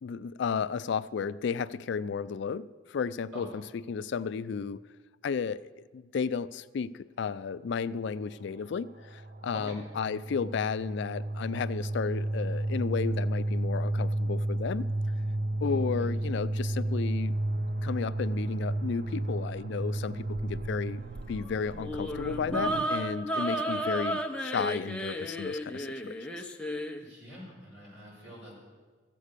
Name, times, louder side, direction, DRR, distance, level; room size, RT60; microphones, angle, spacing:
voice 1, 0.0-3.5 3.7-4.8 5.2-14.9 15.6-17.4 17.8-21.0 21.3-26.5, left 6 dB, 65° left, 15 dB, 0.3 m, -33 dB
sound 1, 8.6-22.8, right 1 dB, 45° right, 0.5 m, -32 dB
voice 2, 15.6-16.1 23.5-23.9 27.0-28.5, equal, 65° right, -4 dB, 5.1 m, -46 dB
sound 2, 21.8-27.0, right 1 dB, 5° left, 0.6 m, -33 dB
14.0 x 8.5 x 6.6 m, 1.5 s
head